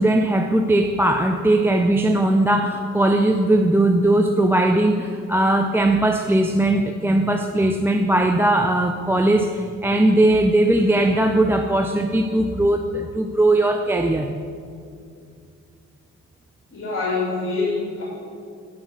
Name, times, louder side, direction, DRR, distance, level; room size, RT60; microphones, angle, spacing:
voice 1, 0.0-14.4, right 1 dB, 10° right, 4 dB, 0.4 m, -19 dB
voice 2, 16.7-18.0, left 3 dB, 45° left, -5 dB, 2.6 m, -25 dB
10.0 x 4.9 x 7.4 m, 2.3 s
cardioid pair, 90°, 30 cm